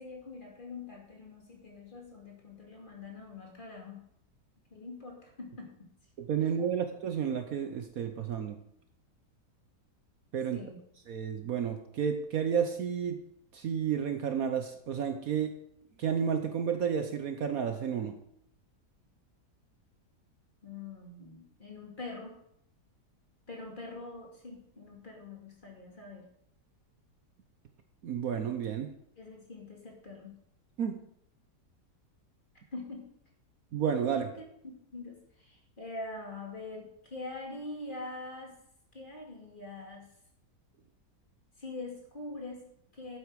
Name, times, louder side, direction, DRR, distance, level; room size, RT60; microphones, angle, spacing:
voice 1, 0.0-4.0 4.7-5.7 10.5-10.8 20.6-22.4 23.5-26.3 29.2-30.3 32.7-33.1 34.2-34.3 34.9-38.5 38.9-40.1 41.6-43.2, left 3 dB, 30° left, -1 dB, 2.5 m, -44 dB
voice 2, 6.2-8.6 10.3-10.6 11.1-13.2 13.5-15.5 16.0-18.2 28.0-28.9 30.8-31.0 33.7-34.3, right 7 dB, 60° right, 7 dB, 1.2 m, -31 dB
11.5 x 8.3 x 4.7 m, 0.73 s
omnidirectional pair, 1.8 m